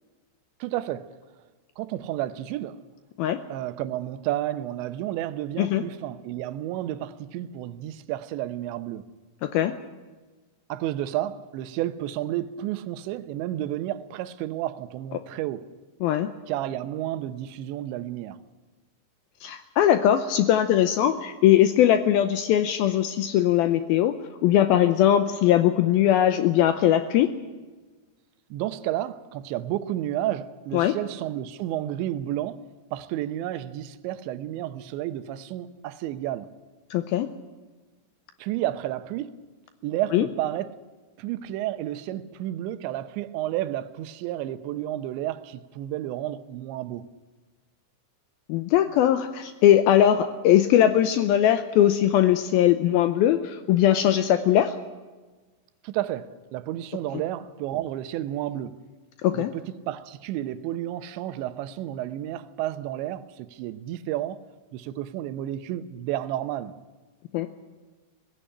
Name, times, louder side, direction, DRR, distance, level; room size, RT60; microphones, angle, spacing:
voice 1, 0.6-1.1 1.8-2.8 3.5-9.1 10.7-15.7 16.5-18.4 28.5-32.6 32.9-36.5 38.4-39.4 39.8-40.8 41.2-47.1 55.8-58.7 59.3-64.4 64.7-66.7, right 13 dB, 85° right, 3.1 m, -31 dB
voice 2, 19.4-24.1 24.4-27.3 30.7-30.9 36.9-37.3 40.1-40.3 48.5-54.7 59.2-59.5 67.3-67.5, left 11 dB, 80° left, 2.2 m, -20 dB
18.0 x 15.5 x 10.0 m
omnidirectional pair, 5.1 m